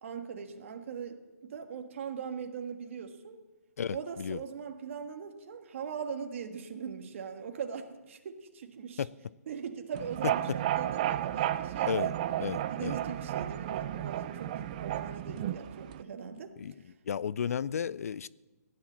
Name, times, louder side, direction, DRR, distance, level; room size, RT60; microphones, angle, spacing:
voice 1, 0.0-3.4 3.9-9.0 9.5-12.1 12.7-16.6, right 6 dB, 45° right, 1.6 m, -40 dB
voice 2, 3.8-4.4 9.0-9.1 10.2-10.6 11.9-12.1 12.4-13.0 15.3-15.5 16.6-16.7 17.1-18.3, left 7 dB, 60° left, 0.4 m, -33 dB
sound 1, 9.9-16.0, right 12 dB, 30° right, 0.4 m, -33 dB
16.0 x 10.5 x 7.4 m
hypercardioid pair, 155°, 9 cm